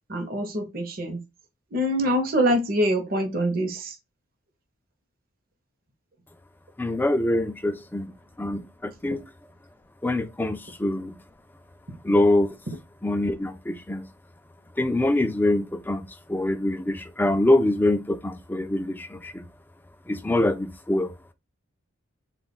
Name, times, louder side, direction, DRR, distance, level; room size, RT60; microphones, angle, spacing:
voice 1, 0.1-1.2 1.7-4.0 11.9-12.0 12.7-12.8, equal, 45° right, 0.7 m, -25 dB
voice 2, 6.8-8.1 8.4-9.2 10.0-11.1 12.0-12.5 13.0-14.0 14.8-19.4 20.1-21.1, left 1 dB, 10° left, 0.3 m, -24 dB
3.7 x 2.3 x 4.0 m
head